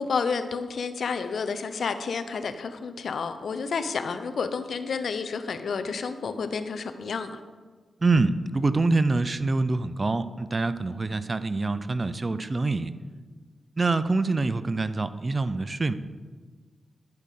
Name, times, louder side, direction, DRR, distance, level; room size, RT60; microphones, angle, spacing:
voice 1, 0.0-7.4, left 5 dB, 70° left, 9 dB, 0.7 m, -30 dB
voice 2, 8.0-12.9 13.8-15.9, right 3 dB, 40° right, 13 dB, 0.6 m, -25 dB
11.0 x 5.2 x 6.6 m, 1.5 s
supercardioid pair, 45°, 0 cm